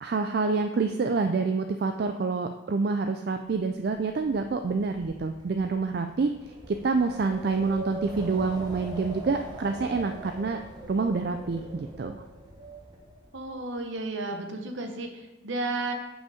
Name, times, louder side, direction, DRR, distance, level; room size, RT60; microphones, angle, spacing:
voice 1, 0.0-10.6 10.9-12.1, right 4 dB, 50° right, 6 dB, 0.4 m, -27 dB
Wind, 3.5-13.6, right 1 dB, 20° right, 1.1 m, -42 dB
voice 2, 13.3-15.9, right 2 dB, 65° right, 4 dB, 1.0 m, -33 dB
6.9 x 5.6 x 4.9 m, 1.1 s
head